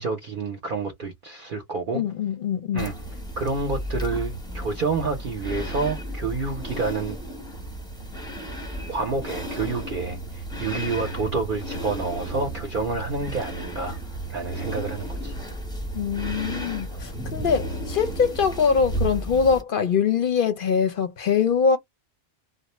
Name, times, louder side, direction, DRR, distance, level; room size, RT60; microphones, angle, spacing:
voice 1, 0.0-2.0 2.7-2.9 3.4-7.2 8.9-14.0 14.3-15.3, right 4 dB, 55° right, 0.7 m, -28 dB
voice 2, 1.9-2.9 15.9-21.8, left 6 dB, 60° left, 0.6 m, -23 dB
sound 1, 2.8-19.6, right 1 dB, 5° left, 0.7 m, -33 dB
2.4 x 2.0 x 2.9 m
omnidirectional pair, 1.2 m